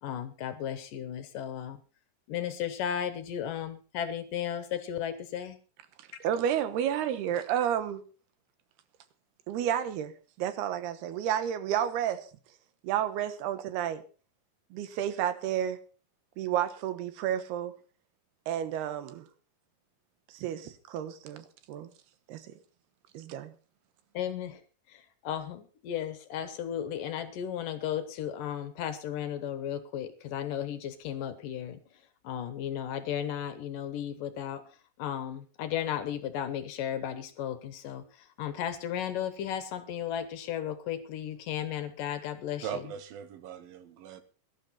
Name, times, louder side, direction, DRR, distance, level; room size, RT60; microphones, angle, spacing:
voice 1, 0.0-1.8 2.3-5.6 24.1-24.6 24.9-31.8 32.2-34.6 35.0-38.0 38.4-42.6, left 10 dB, 70° left, 2.4 m, -35 dB
voice 2, 6.0-8.0 9.5-12.3 12.8-14.0 14.7-15.8 16.4-17.7 18.5-19.3 20.3-21.9 22.3-22.5 23.1-23.5, right 10 dB, 90° right, 3.2 m, -31 dB
voice 3, 42.6-44.2, right 8 dB, 70° right, 2.8 m, -40 dB
17.5 x 12.0 x 4.2 m
omnidirectional pair, 4.5 m